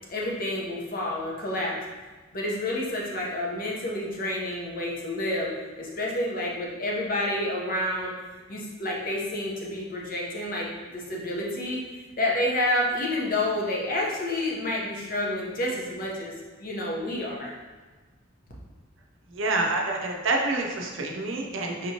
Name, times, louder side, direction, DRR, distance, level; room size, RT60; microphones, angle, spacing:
voice 1, 0.1-1.8 2.3-5.5 5.8-8.1 8.5-11.8 12.2-16.3 16.6-17.5, left 1 dB, 45° left, -3 dB, 0.8 m, -29 dB
voice 2, 19.3-21.9, right 2 dB, 70° right, 1 dB, 0.6 m, -27 dB
4.9 x 2.9 x 2.8 m, 1.3 s
head